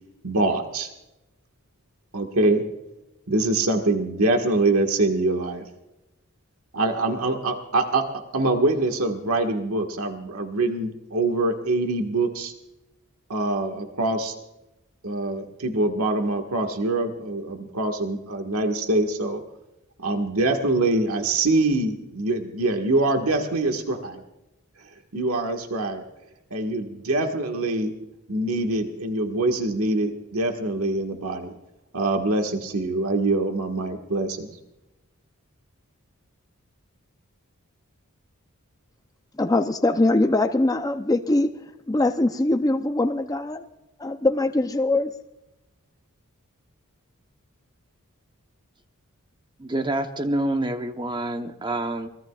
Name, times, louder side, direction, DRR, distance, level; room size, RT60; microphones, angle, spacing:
voice 1, 0.2-0.9 2.1-2.6 3.3-5.7 6.7-8.1 8.3-12.5 13.3-14.3 15.0-19.4 20.0-24.2 25.1-26.0 26.5-27.9 28.3-31.5 31.9-34.5, right 2 dB, 70° right, 4 dB, 1.7 m, -24 dB
voice 2, 39.4-41.5 41.9-43.6 44.0-45.1, left 2 dB, 15° left, 6 dB, 0.6 m, -22 dB
voice 3, 49.6-52.1, right 1 dB, 20° right, 6 dB, 1.0 m, -27 dB
24.5 x 19.5 x 2.4 m, 0.94 s
head